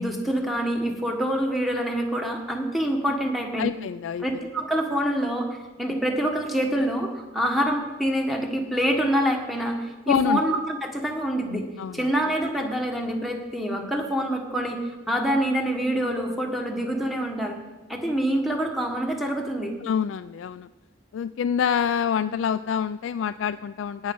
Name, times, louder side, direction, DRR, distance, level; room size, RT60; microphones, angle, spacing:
voice 1, 0.0-3.7 4.2-11.7 11.9-14.8 15.1-17.6 17.9-19.8, equal, ahead, 2 dB, 1.5 m, -26 dB
voice 2, 3.6-4.3 10.1-10.4 11.8-12.1 19.8-20.7 21.1-24.1, left 8 dB, 85° left, 10 dB, 0.3 m, -26 dB
18.0 x 6.3 x 5.4 m, 1.2 s
head